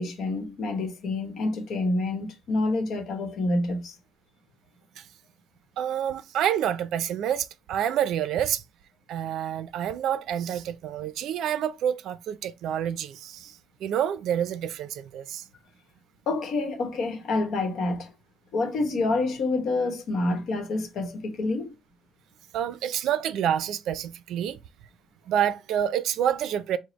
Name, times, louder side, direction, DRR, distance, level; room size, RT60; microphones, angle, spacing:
voice 1, 0.0-4.0 16.3-18.1 18.5-21.7, left 2 dB, 55° left, 0.9 m, -27 dB
voice 2, 5.8-8.6 9.1-13.5 13.8-15.4 22.5-24.6 25.3-26.8, right 10 dB, 70° right, 0.4 m, -28 dB
5.0 x 2.1 x 3.9 m
cardioid pair, 165°, 0 cm